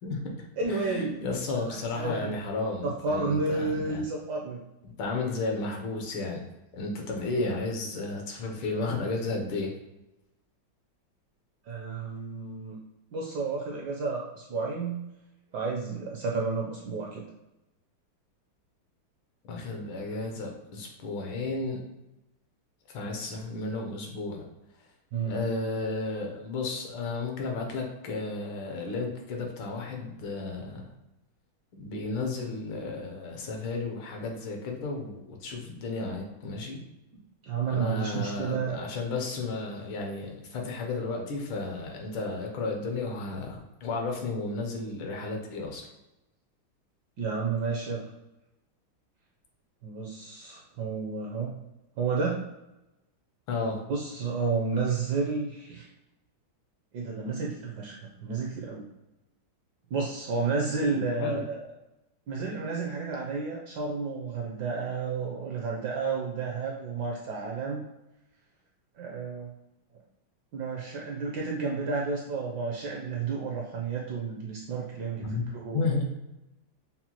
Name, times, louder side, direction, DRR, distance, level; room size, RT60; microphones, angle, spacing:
voice 1, 0.0-4.0 5.0-6.4 6.7-9.7 19.5-21.8 22.9-24.4 25.2-30.9 31.8-36.8 37.7-45.8 53.5-53.8 60.9-61.4 75.2-75.5 75.7-76.0, left 3 dB, 75° left, 1 dB, 1.6 m, -33 dB
voice 2, 0.6-1.2 1.7-2.3 2.8-4.6 11.7-12.8 13.1-15.0 15.5-17.2 25.1-25.4 37.1-38.8 47.2-48.1 49.8-51.5 52.0-52.5 53.9-55.9 56.9-58.9 59.9-61.6 62.3-67.9 69.0-69.5 70.5-75.8, right 4 dB, 75° right, -2 dB, 1.0 m, -31 dB
5.5 x 2.2 x 2.8 m, 0.96 s
omnidirectional pair, 2.3 m